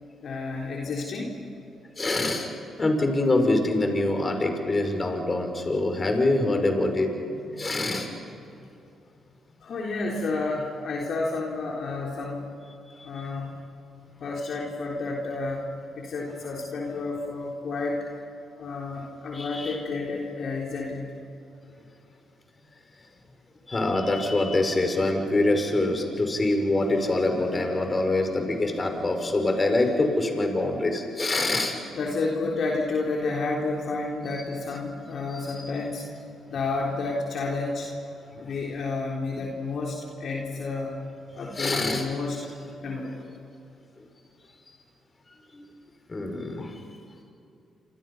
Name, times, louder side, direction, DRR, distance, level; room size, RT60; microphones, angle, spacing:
voice 1, 0.2-1.4 9.6-12.5 13.0-13.5 14.2-15.7 16.0-18.1 18.6-21.1 31.9-36.1 36.5-37.9 38.4-41.0 41.3-42.4 42.8-43.1, left 3 dB, 65° left, -2 dB, 3.7 m, -30 dB
voice 2, 2.0-2.5 2.8-8.1 19.3-19.8 23.7-31.8 34.3-34.4 35.3-35.7 41.6-42.1 45.5-45.7 46.1-46.7, left 2 dB, 35° left, 4 dB, 5.7 m, -25 dB
27.5 x 27.5 x 5.7 m, 2.7 s
hypercardioid pair, 50°, 0 cm